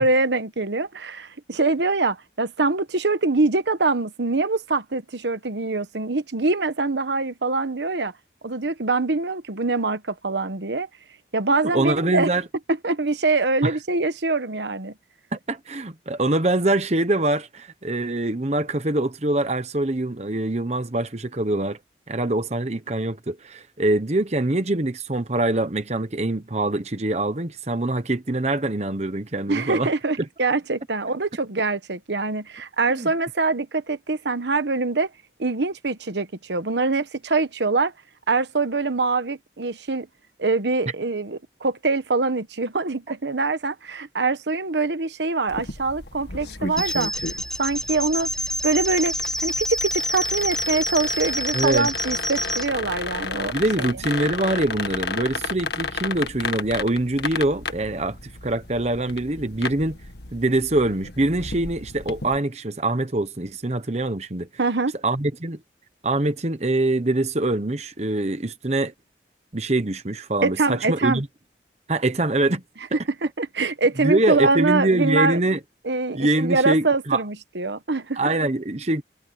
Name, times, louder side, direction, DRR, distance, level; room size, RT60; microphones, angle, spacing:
voice 1, 0.0-8.1 8.4-10.9 11.3-12.3 12.8-14.9 29.5-35.1 35.4-37.9 38.3-40.1 40.4-47.1 47.6-48.3 48.6-49.1 49.4-53.5 53.8-53.9 64.6-64.9 70.4-71.2 73.2-75.4 75.8-78.2, right 3 dB, 80° right, 1.2 m, -24 dB
voice 2, 11.5-12.4 13.6-13.8 15.3-21.8 22.1-29.9 32.9-33.1 51.5-51.9 53.5-60.0 60.3-64.5 65.0-65.6 66.0-68.9 69.5-71.3 71.9-72.6 72.9-73.0 74.0-75.6 76.1-77.2 78.2-79.0, right 2 dB, 40° right, 1.0 m, -24 dB
sound 1, 45.5-62.4, left 4 dB, 70° left, 1.8 m, -33 dB
sound 2, 46.8-52.7, equal, 5° left, 1.1 m, -27 dB
head